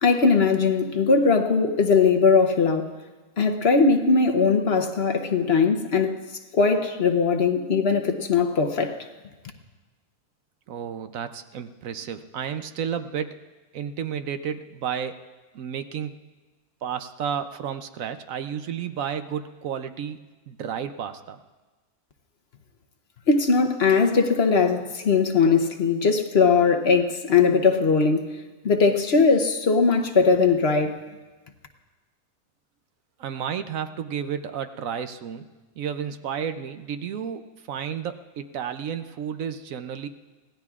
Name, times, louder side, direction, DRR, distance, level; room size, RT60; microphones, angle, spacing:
voice 1, 0.0-2.9 3.4-6.2 6.5-9.0 23.3-31.0, left 4 dB, 50° left, 5 dB, 0.9 m, -20 dB
voice 2, 10.7-13.4 13.7-15.2 15.5-16.2 16.8-20.2 20.5-21.4 33.2-35.5 35.8-40.1, right 8 dB, 70° right, 9 dB, 1.0 m, -32 dB
25.0 x 18.0 x 2.4 m, 1.2 s
omnidirectional pair, 1.6 m